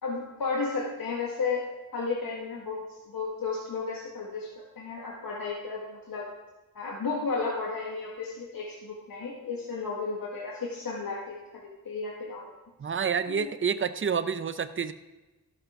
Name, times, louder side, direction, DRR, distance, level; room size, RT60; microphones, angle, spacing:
voice 1, 0.0-6.3 6.8-11.4 11.9-12.5 13.3-13.5, left 4 dB, 75° left, -3 dB, 1.8 m, -33 dB
voice 2, 12.8-14.9, right 6 dB, 35° right, 12 dB, 0.6 m, -28 dB
13.5 x 13.0 x 3.7 m, 1.1 s
wide cardioid pair, 125°, 35 cm